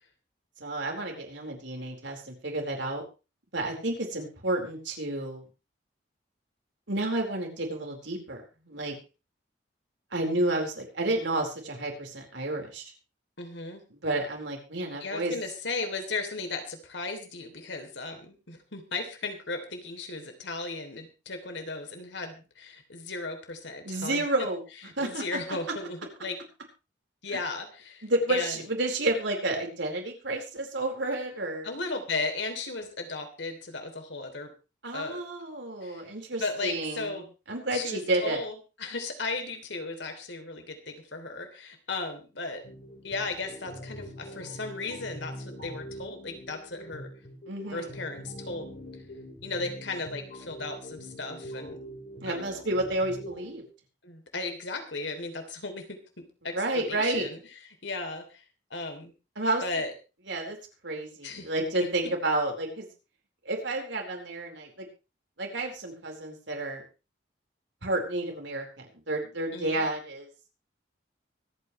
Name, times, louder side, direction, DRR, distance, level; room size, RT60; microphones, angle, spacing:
voice 1, 0.6-3.0 3.5-5.4 6.9-9.0 10.1-12.8 13.9-15.3 23.8-24.6 25.0-25.4 28.0-31.7 34.8-38.4 47.5-47.9 52.2-53.6 56.5-57.3 59.4-59.6 60.3-60.6 60.8-62.9 63.4-64.9 65.4-66.8 67.8-70.3, right 2 dB, 75° right, 1 dB, 4.5 m, -30 dB
voice 2, 13.4-13.8 15.0-24.2 25.0-26.4 27.2-28.6 31.6-34.5 34.9-35.2 35.8-36.1 36.4-37.2 37.7-42.6 43.0-47.1 47.7-48.7 49.4-51.8 52.3-52.6 54.0-57.4 57.8-58.4 58.7-59.1 59.6-59.9 61.2-62.1 69.5-69.9, left 3 dB, 75° left, 5 dB, 3.1 m, -36 dB
sound 1, 42.6-53.7, equal, 50° left, 3.1 m, -44 dB
24.5 x 9.4 x 3.2 m, 0.31 s
head